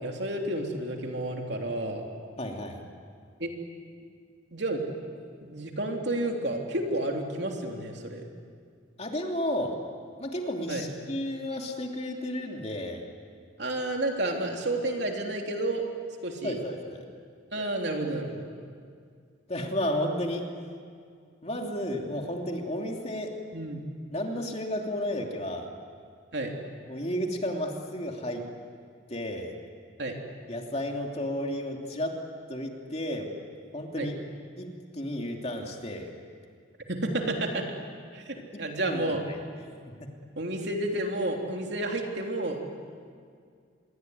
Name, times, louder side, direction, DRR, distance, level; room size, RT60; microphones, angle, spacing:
voice 1, 0.0-2.0 3.4-3.5 4.5-4.8 5.4-8.2 10.7-10.9 13.6-15.8 16.2-16.6 17.5-18.5 23.5-23.8 26.3-26.6 30.0-30.1 34.0-34.1 36.9-37.7 38.1-39.2 40.4-42.6, right 1 dB, 60° right, 2 dB, 3.4 m, -31 dB
voice 2, 2.4-2.8 9.0-9.8 10.2-13.0 16.4-17.0 19.5-20.4 21.4-23.3 24.1-25.7 26.9-28.4 29.1-29.5 30.5-32.2 32.5-33.3 33.7-34.2 34.6-34.7 34.9-36.1 38.5-39.4 40.0-40.1, left 1 dB, 30° left, 2 dB, 2.9 m, -32 dB
26.5 x 22.5 x 9.5 m, 2.2 s
head